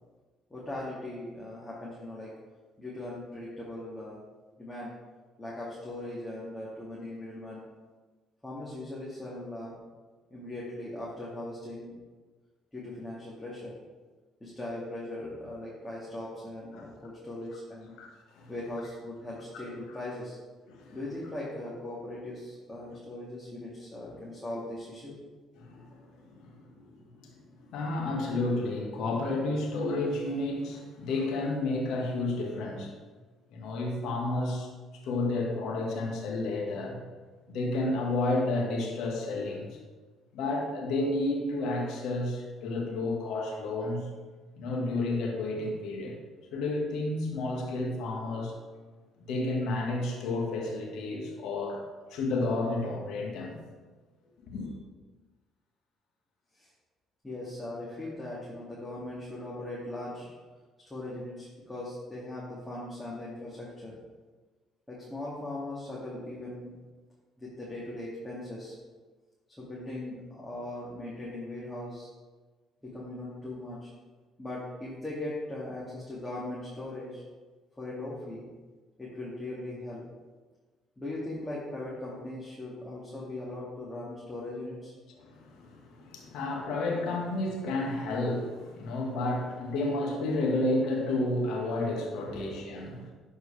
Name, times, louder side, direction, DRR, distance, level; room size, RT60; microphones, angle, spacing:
voice 1, 0.5-2.3 2.8-4.2 4.6-4.9 5.4-7.6 8.4-9.8 10.3-12.0 12.7-13.8 14.4-18.0 18.5-20.4 20.9-25.1 56.6-56.7 57.2-60.3 60.8-64.0 64.9-66.7 67.4-68.8 69.6-72.1 72.8-73.9 74.4-77.2 77.7-78.5 79.0-80.0 81.0-84.9 92.3-92.5, left 1 dB, 15° left, -7 dB, 2.3 m, -39 dB
voice 2, 18.0-18.5 20.7-21.0 22.8-23.0 25.6-32.9 33.5-34.7 35.0-39.7 40.3-44.1 44.6-46.2 46.5-48.5 49.2-51.8 52.1-53.5 54.5-54.7 85.2-93.1, left 2 dB, 70° left, 0 dB, 1.7 m, -31 dB
11.5 x 4.7 x 3.4 m, 1.3 s
hypercardioid pair, 60°, 0 cm